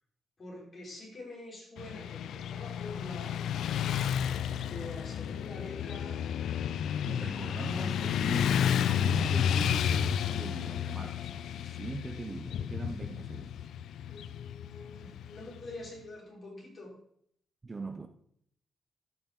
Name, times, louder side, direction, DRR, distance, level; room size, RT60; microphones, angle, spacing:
voice 1, 0.4-3.5 4.7-6.2 14.0-16.9, left 2 dB, 35° left, 3.9 m, -45 dB
Motorcycle / Traffic noise roadway noise, 1.8-15.9, left 9 dB, 85° left, 0.3 m, -32 dB
voice 2, 7.1-13.7 17.6-18.1, right 3 dB, 25° right, 0.5 m, -41 dB
13.5 x 5.7 x 3.7 m
wide cardioid pair, 140°, 0 cm